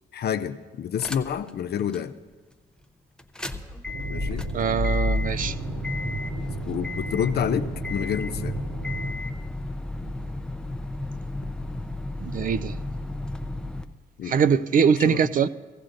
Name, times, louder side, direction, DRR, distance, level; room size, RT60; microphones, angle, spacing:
voice 1, 0.1-2.1 4.1-4.5 6.7-8.6 10.1-10.2 14.2-14.6 15.0-15.3, left 8 dB, 55° left, 0.6 m, -29 dB
sound 1, 1.0-1.5 1.9-2.0 3.2-13.8, left 2 dB, 5° left, 0.6 m, -31 dB
sound 2, 3.9-9.1, right 6 dB, 70° right, 0.7 m, -36 dB
voice 2, 4.5-5.6 12.2-12.8 14.3-15.5, right 6 dB, 45° right, 0.4 m, -22 dB
16.0 x 14.5 x 2.6 m
cardioid pair, 90°, 20 cm